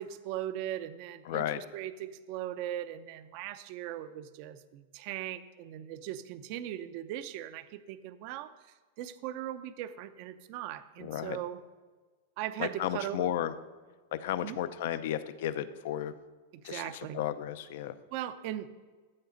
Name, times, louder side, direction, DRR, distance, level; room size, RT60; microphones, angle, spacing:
voice 1, 0.0-8.5 9.0-11.6 12.4-13.3 14.4-14.6 16.6-17.2 18.1-18.7, right 12 dB, 50° right, 12 dB, 0.6 m, -39 dB
voice 2, 1.3-1.6 11.0-11.4 12.6-13.5 14.1-16.1 16.6-17.9, left 11 dB, 65° left, 13 dB, 0.6 m, -33 dB
13.0 x 8.4 x 3.9 m, 1.4 s
hypercardioid pair, 135°, 0 cm